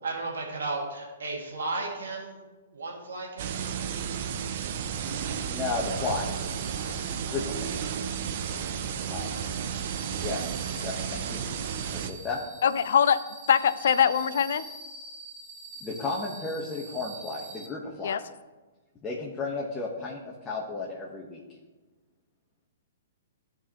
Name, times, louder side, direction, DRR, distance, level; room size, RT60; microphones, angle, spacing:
voice 1, 0.0-2.4 2.7-4.0 5.9-6.1 6.7-7.6 8.5-10.2, right 3 dB, 75° right, -1 dB, 1.9 m, -37 dB
sound 1, 3.4-12.1, right 7 dB, 50° right, 0.6 m, -33 dB
voice 2, 5.4-6.5 7.2-7.4 9.1-9.4 10.2-10.4 10.8-11.4 11.9-12.4 15.8-18.2 19.0-21.4, left 3 dB, 15° left, -5 dB, 1.2 m, -33 dB
sound 2, 5.8-17.7, right 3 dB, 30° right, 1.0 m, -46 dB
voice 3, 12.6-13.2 13.5-14.6 18.0-18.2, left 8 dB, 65° left, 15 dB, 0.4 m, -22 dB
13.5 x 4.6 x 3.0 m, 1.3 s
hypercardioid pair, 120°, 0 cm